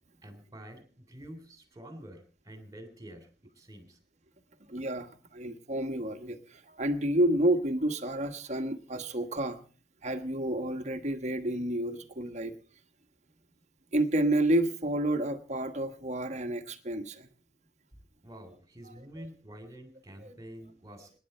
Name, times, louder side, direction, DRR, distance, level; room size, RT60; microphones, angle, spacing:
voice 1, 0.2-3.3 3.5-4.0 18.2-21.1, equal, 20° right, 8 dB, 3.3 m, -48 dB
voice 2, 4.7-9.6 10.0-12.5 13.9-17.3 19.2-19.3 20.2-20.3, right 1 dB, 40° right, 7 dB, 1.3 m, -30 dB
26.0 x 10.0 x 4.3 m, 0.38 s
head